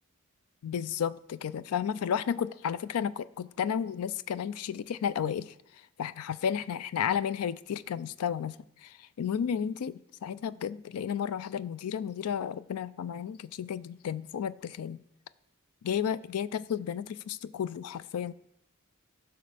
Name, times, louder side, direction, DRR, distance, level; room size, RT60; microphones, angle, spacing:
voice 1, 0.6-15.0 15.8-18.3, left 8 dB, 85° left, 0.4 m, -33 dB
15.5 x 5.7 x 3.4 m
head